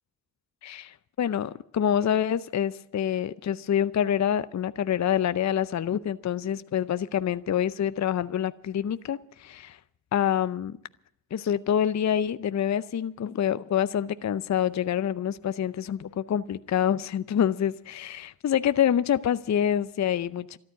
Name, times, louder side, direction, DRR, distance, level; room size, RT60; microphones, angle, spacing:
voice 1, 0.6-9.8 10.1-10.8 11.3-20.6, left 9 dB, 40° left, 15 dB, 0.6 m, -26 dB
13.5 x 11.5 x 8.5 m, 0.73 s
supercardioid pair, 45°, 44 cm